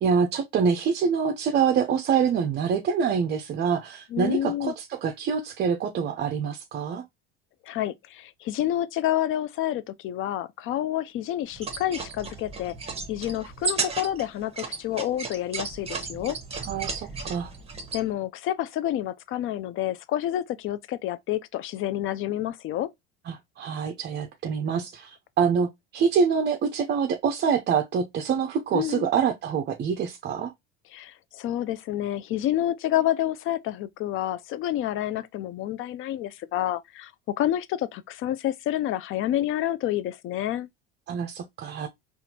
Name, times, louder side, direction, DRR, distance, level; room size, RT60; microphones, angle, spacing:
voice 1, 0.0-7.0 16.7-17.5 23.3-30.5 41.1-41.9, right 6 dB, 35° right, 0.5 m, -26 dB
voice 2, 4.1-4.7 7.6-12.7 13.1-16.4 17.9-22.9 28.7-29.1 30.9-40.7, left 12 dB, 45° left, 0.4 m, -29 dB
sound 1, 11.5-18.0, right 4 dB, 20° right, 0.9 m, -34 dB
4.1 x 2.4 x 2.7 m
supercardioid pair, 100°, 30 cm